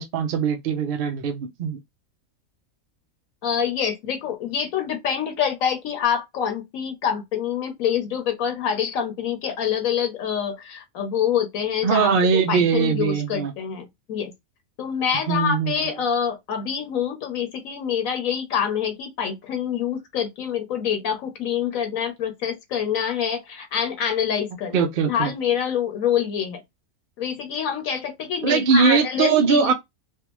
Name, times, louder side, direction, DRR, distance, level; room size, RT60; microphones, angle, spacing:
voice 1, 0.0-1.8 11.8-13.5 15.3-15.7 24.7-25.3 28.4-29.7, right 6 dB, 55° right, 0.6 m, -21 dB
voice 2, 3.4-12.1 12.5-14.3 14.8-26.6 27.2-29.7, left 8 dB, 75° left, 1.1 m, -26 dB
3.4 x 2.3 x 2.9 m
omnidirectional pair, 1.5 m